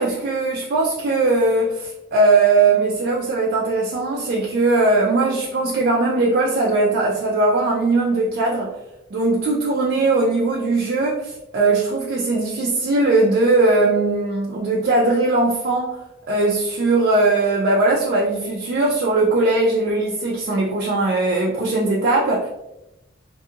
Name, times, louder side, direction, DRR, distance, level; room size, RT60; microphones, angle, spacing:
voice 1, 0.0-8.8 9.1-16.0 16.3-22.5, right 2 dB, 55° right, -3 dB, 0.4 m, -19 dB
2.7 x 2.6 x 2.4 m, 0.94 s
head